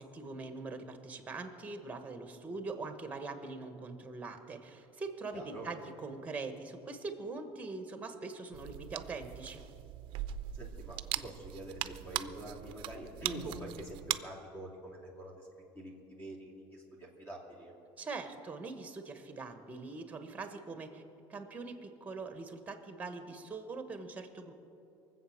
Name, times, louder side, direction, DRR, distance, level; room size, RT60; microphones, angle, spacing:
voice 1, 0.0-9.6 18.0-21.0 21.3-24.5, right 3 dB, 15° right, 7 dB, 1.2 m, -42 dB
voice 2, 5.3-5.7 10.5-15.5 15.7-17.7, right 1 dB, 25° left, -2 dB, 2.7 m, -45 dB
sound 1, 8.5-14.2, right 14 dB, 60° right, 0.5 m, -40 dB
23.0 x 7.9 x 6.6 m, 2.8 s
cardioid pair, 150°, 10 cm